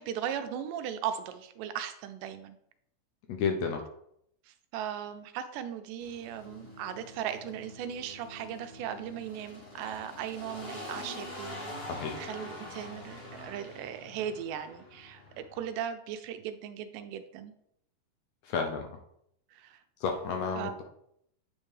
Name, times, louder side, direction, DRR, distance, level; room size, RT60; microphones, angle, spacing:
voice 1, 0.0-2.6 4.5-11.9 12.2-17.5 19.5-19.8 20.6-20.7, right 9 dB, 90° right, 9 dB, 2.2 m, -38 dB
voice 2, 3.3-3.8 11.9-12.2 18.4-18.9 20.0-20.8, left 5 dB, 80° left, 3 dB, 1.7 m, -31 dB
sound 1, 6.0-15.7, left 1 dB, 55° left, 0.6 m, -45 dB
8.8 x 4.3 x 3.2 m, 0.73 s
omnidirectional pair, 3.6 m